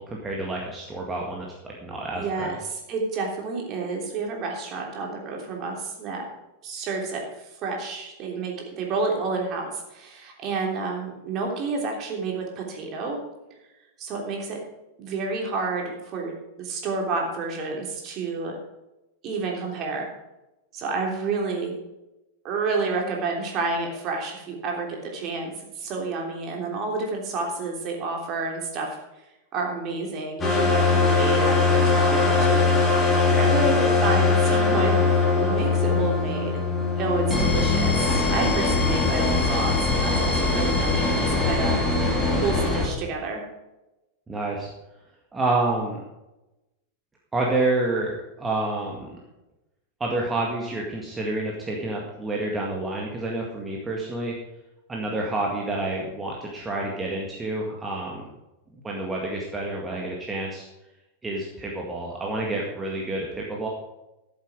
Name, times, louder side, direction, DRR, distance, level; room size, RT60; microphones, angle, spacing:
voice 1, 0.0-2.5 44.3-44.7 45.3-46.0 47.3-49.2 50.0-54.4 54.9-58.2 58.8-60.7 61.2-63.7, right 2 dB, 15° right, -2 dB, 2.0 m, -28 dB
voice 2, 2.1-6.3 6.6-7.2 7.6-13.2 14.0-14.6 15.0-16.3 16.6-18.6 19.2-20.1 20.7-21.7 22.4-29.0 29.5-32.6 33.1-36.6 37.0-41.8 42.3-43.4, right 3 dB, 35° right, 0 dB, 3.3 m, -30 dB
sound 1, 30.4-42.9, left 3 dB, 20° left, 3.0 m, -21 dB
13.5 x 7.8 x 5.0 m, 0.97 s
figure-of-eight pair, 90°, 0 cm